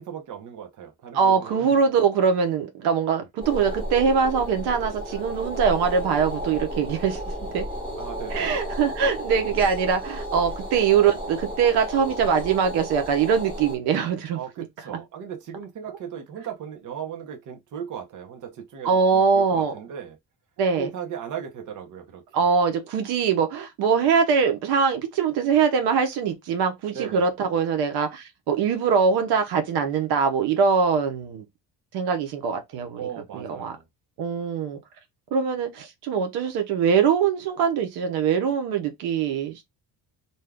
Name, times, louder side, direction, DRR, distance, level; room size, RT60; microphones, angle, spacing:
voice 1, 0.0-1.8 8.0-8.6 14.3-20.2 20.7-22.4 26.9-27.3 33.0-33.8, right 8 dB, 50° right, 0.9 m, -37 dB
voice 2, 1.1-7.2 7.5-7.7 8.3-14.4 14.9-15.0 15.9-16.0 18.8-19.7 20.6-20.9 22.3-31.4 31.9-33.1 33.3-33.8 34.2-34.8 35.3-39.6, right 6 dB, 85° right, 0.8 m, -22 dB
sound 1, 3.4-13.8, equal, 10° right, 1.4 m, -33 dB
2.7 x 2.3 x 3.4 m
cardioid pair, 145°, 38 cm